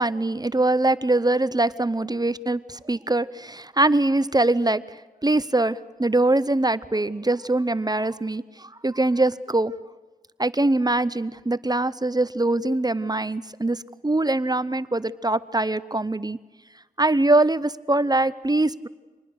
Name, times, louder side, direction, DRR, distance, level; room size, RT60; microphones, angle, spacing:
voice 1, 0.0-4.8 5.2-9.7 10.4-16.4 17.0-18.9, right 2 dB, 25° right, 16 dB, 0.7 m, -23 dB
25.0 x 20.0 x 6.5 m, 1.3 s
wide cardioid pair, 45°, 15 cm